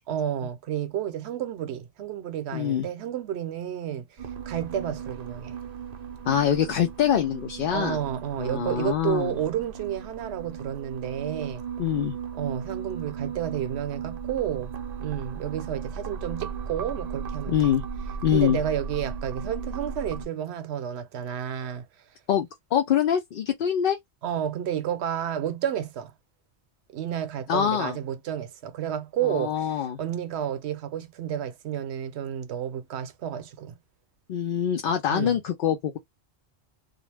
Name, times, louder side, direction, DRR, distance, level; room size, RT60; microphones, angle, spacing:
voice 1, 0.1-5.6 7.7-11.6 12.3-14.7 15.0-17.7 18.3-21.9 24.2-26.1 26.9-33.8 35.1-35.4, right 10 dB, 75° right, 0.8 m, -31 dB
voice 2, 2.5-2.9 6.3-8.0 8.4-9.3 11.8-12.2 17.5-17.8 18.2-18.6 22.3-24.0 27.5-28.0 29.2-30.0 34.3-36.0, left 9 dB, 60° left, 0.6 m, -24 dB
sound 1, 4.2-20.3, right 6 dB, 50° right, 0.5 m, -36 dB
2.4 x 2.0 x 3.2 m
omnidirectional pair, 1.1 m